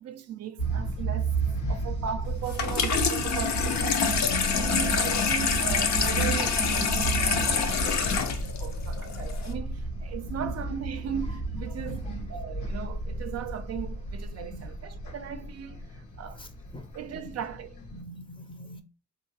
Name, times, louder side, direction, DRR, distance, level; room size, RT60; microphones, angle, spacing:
voice 1, 0.0-1.4 1.7-4.1 4.5-16.4 16.9-17.8, right 8 dB, 55° right, 0.4 m, -37 dB
sound 1, 0.6-18.0, right 2 dB, 85° left, 1.1 m, -33 dB
voice 2, 1.7-2.1 10.2-10.5 11.7-12.0 14.4-14.6 16.4-16.5 16.7-16.9 17.2-17.3 17.9-18.8, equal, 15° left, 0.6 m, -44 dB
Water tap faucet / Sink (filling or washing), 2.5-9.5, left 6 dB, 65° left, 0.7 m, -26 dB
3.7 x 2.6 x 2.8 m
cardioid pair, 90°, 30 cm